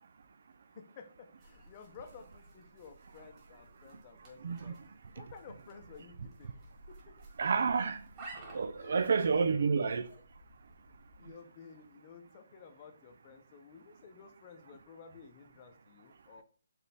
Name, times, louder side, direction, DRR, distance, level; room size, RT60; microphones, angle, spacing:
voice 1, 0.7-4.8 5.1-6.5 6.9-7.2 8.8-9.7 10.1-10.2 11.2-16.4, left 6 dB, 35° left, 0.7 m, -53 dB
sound 1, 1.4-11.3, right 2 dB, 25° right, 1.6 m, -55 dB
voice 2, 4.4-4.7 7.4-8.0 8.5-10.1, right 5 dB, 65° right, 0.4 m, -29 dB
4.4 x 3.2 x 3.4 m
hypercardioid pair, 155°, 0 cm